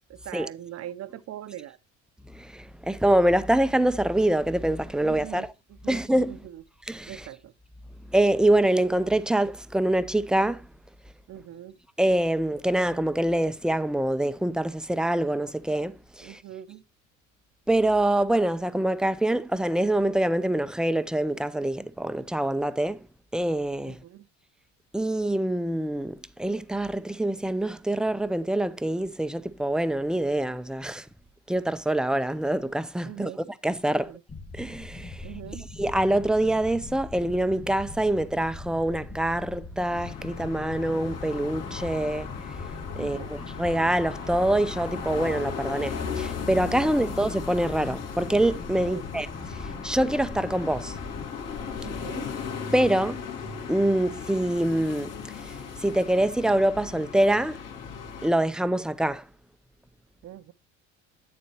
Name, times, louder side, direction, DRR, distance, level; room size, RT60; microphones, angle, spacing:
voice 1, 0.1-1.8 5.0-6.0 6.3-6.6 7.1-7.5 11.3-11.8 16.2-16.8 23.9-24.3 33.0-33.4 34.0-34.2 35.2-35.7 43.0-43.4 46.8-47.1 48.8-49.0 51.8-52.3 60.2-60.5, right 12 dB, 45° right, 0.7 m, -41 dB
voice 2, 2.3-5.5 5.9-6.4 6.9-7.3 8.1-10.7 12.0-16.4 17.7-23.0 23.3-24.0 24.9-31.1 31.5-33.3 33.6-34.1 34.5-35.3 35.8-42.6 43.0-51.0 52.7-53.2 53.7-57.6 58.2-59.2, right 1 dB, ahead, 0.4 m, -25 dB
sound 1, 34.3-51.3, left 3 dB, 25° left, 1.5 m, -41 dB
sound 2, 39.9-58.3, left 6 dB, 60° left, 2.2 m, -37 dB
8.5 x 7.2 x 2.9 m
hypercardioid pair, 75°, 35 cm